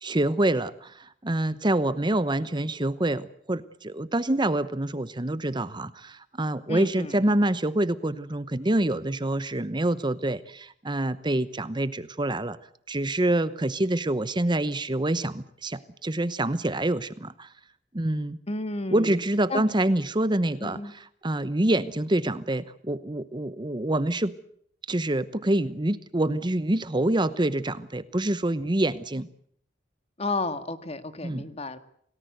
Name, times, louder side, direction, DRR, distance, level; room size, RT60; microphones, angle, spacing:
voice 1, 0.0-12.6 12.9-17.5 17.9-18.4 18.9-20.8 21.2-24.3 24.9-29.3 31.2-31.5, right 1 dB, 25° right, 14 dB, 0.9 m, -26 dB
voice 2, 6.7-7.3 18.5-19.2 19.5-19.6 20.6-20.9 30.2-31.8, left 2 dB, 35° left, 10 dB, 1.9 m, -32 dB
28.5 x 18.5 x 8.0 m, 0.66 s
head